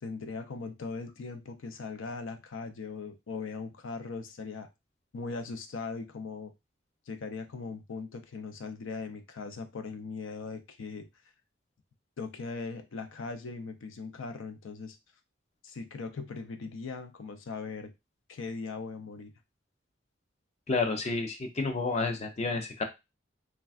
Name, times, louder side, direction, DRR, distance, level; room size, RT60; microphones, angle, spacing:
voice 1, 0.0-4.7 5.1-6.5 7.1-11.1 12.2-15.0 15.6-17.9 18.3-19.3, left 4 dB, 90° left, 8 dB, 0.5 m, -39 dB
voice 2, 20.7-22.8, left 3 dB, 35° left, 5 dB, 0.4 m, -30 dB
3.4 x 2.2 x 2.3 m, 0.23 s
head